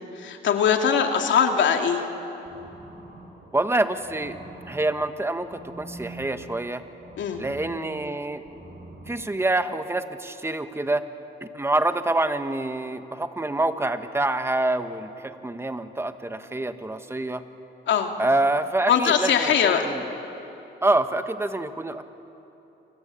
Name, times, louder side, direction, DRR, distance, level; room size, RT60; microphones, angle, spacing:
voice 1, 0.2-2.1 7.2-7.4 17.9-18.1 18.9-19.9, left 7 dB, 70° left, 4 dB, 2.9 m, -21 dB
sound 1, 2.4-9.1, right 2 dB, 45° right, 7.7 m, -45 dB
voice 2, 3.5-4.3 4.7-6.8 7.4-8.4 9.1-11.0 11.4-17.4 18.2-20.0 20.8-22.0, right 2 dB, 10° right, 9 dB, 1.6 m, -26 dB
28.0 x 25.0 x 8.6 m, 3.0 s
cardioid pair, 90°, 20 cm